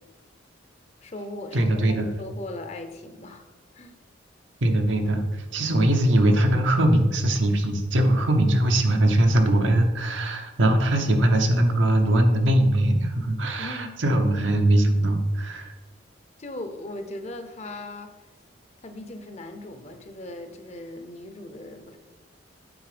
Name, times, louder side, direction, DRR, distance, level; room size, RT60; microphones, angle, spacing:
voice 1, 1.0-4.0 13.6-14.0 16.4-18.1 18.8-22.0, left 1 dB, 35° left, 7 dB, 0.7 m, -38 dB
voice 2, 1.5-2.0 4.6-5.2 5.5-15.7, right 1 dB, 85° right, 4 dB, 1.0 m, -21 dB
8.7 x 4.2 x 5.0 m, 1.2 s
head